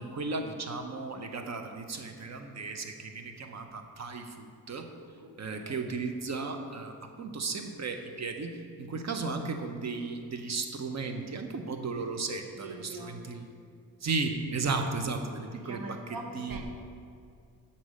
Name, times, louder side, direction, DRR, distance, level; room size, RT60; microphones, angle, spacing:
voice 1, 0.0-4.9 5.4-13.5 14.0-15.8 16.3-16.6, right 4 dB, 50° right, 5 dB, 0.8 m, -35 dB
voice 2, 5.2-5.9 12.6-13.2 15.6-16.6, right 3 dB, 70° right, 4 dB, 1.0 m, -43 dB
8.2 x 4.2 x 6.3 m, 2.4 s
cardioid pair, 90°, 36 cm